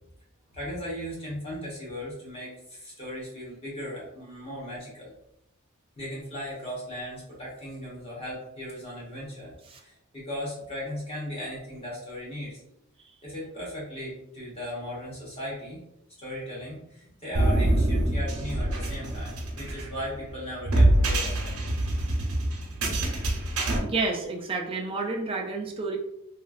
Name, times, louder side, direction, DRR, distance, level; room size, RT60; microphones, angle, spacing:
voice 1, 0.5-5.1 6.0-12.6 13.2-15.8 16.2-21.6, equal, 25° left, -6 dB, 1.0 m, -37 dB
sound 1, 17.3-23.8, right 1 dB, 80° right, 0.7 m, -25 dB
voice 2, 23.8-26.0, right 3 dB, 25° right, 1 dB, 0.4 m, -30 dB
3.0 x 2.4 x 2.4 m, 0.79 s
head